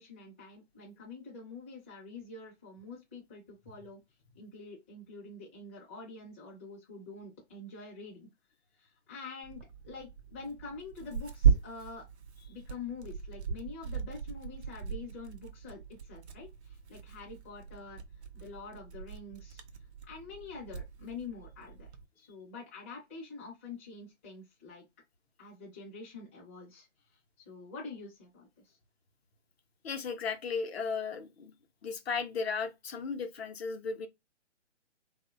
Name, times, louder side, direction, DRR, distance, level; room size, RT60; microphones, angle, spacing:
voice 1, 0.0-4.0 4.3-8.3 8.7-12.0 12.5-18.0 18.3-19.6 20.1-21.9 22.2-24.8 25.4-28.8, left 4 dB, 10° left, 0.4 m, -46 dB
Tearing, 9.4-22.0, right 7 dB, 65° right, 0.6 m, -36 dB
voice 2, 29.8-31.5 31.8-34.1, left 5 dB, 60° left, 0.5 m, -35 dB
2.7 x 2.1 x 2.3 m
figure-of-eight pair, 140°, 35 cm